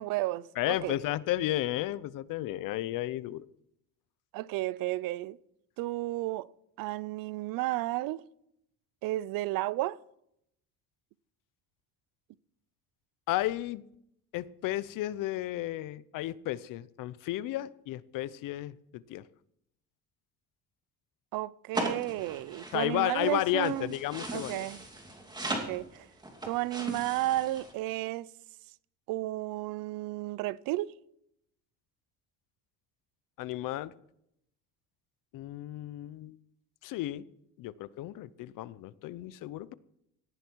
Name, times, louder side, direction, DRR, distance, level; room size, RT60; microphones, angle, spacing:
voice 1, 0.0-0.9 4.3-5.4 5.8-6.5 6.8-8.2 9.0-10.0 21.3-23.9 24.3-24.8 25.5-26.1 26.4-28.3 29.1-30.9, right 17 dB, 80° right, 0.6 m, -33 dB
voice 2, 0.6-3.5 13.3-13.8 14.3-19.2 22.7-24.7 33.4-33.9 35.3-36.4 36.8-37.2 37.6-39.7, left 15 dB, 70° left, 0.8 m, -33 dB
sound 1, 21.7-27.7, right 1 dB, 10° right, 2.7 m, -38 dB
18.0 x 14.0 x 4.6 m
cardioid pair, 140°, 33 cm